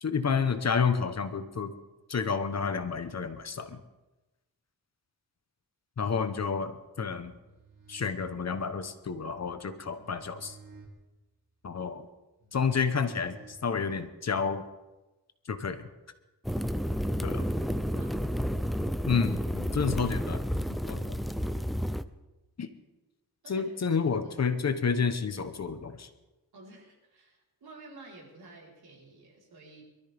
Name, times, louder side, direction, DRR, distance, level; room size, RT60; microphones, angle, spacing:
voice 1, 0.0-1.7 2.1-3.8 6.0-7.3 7.9-10.6 11.6-12.1 12.5-14.7 15.5-15.9 17.2-17.4 19.1-20.4 20.9-21.2 22.6-22.7 23.5-26.1, left 5 dB, 45° left, 10 dB, 1.0 m, -30 dB
sound 1, 7.2-14.1, right 4 dB, 55° right, 2.5 m, -54 dB
sound 2, 16.4-22.0, equal, ahead, 0.4 m, -31 dB
voice 2, 17.8-18.2 18.6-18.8 23.4-23.7 26.5-29.8, right 3 dB, 75° right, -3 dB, 4.3 m, -51 dB
23.0 x 13.5 x 3.5 m, 1.1 s
wide cardioid pair, 130°, 38 cm